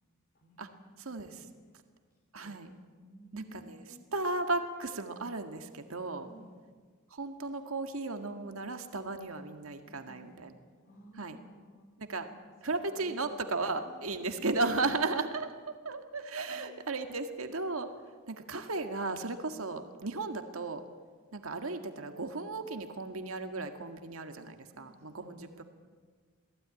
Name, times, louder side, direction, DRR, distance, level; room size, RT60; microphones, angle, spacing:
voice 1, 0.3-1.5 2.4-2.6 3.0-4.1 6.2-6.5 9.9-12.3 12.8-14.6 15.6-15.7 16.5-17.3 24.7-25.6, equal, 50° left, 1 dB, 3.6 m, -56 dB
voice 2, 1.1-1.4 2.3-2.7 3.3-3.8 4.1-6.3 7.1-10.5 11.2-11.4 12.0-12.3 12.6-17.9 18.3-20.8 21.3-25.6, right 3 dB, 75° right, 6 dB, 1.9 m, -35 dB
28.0 x 18.5 x 9.8 m, 1.5 s
head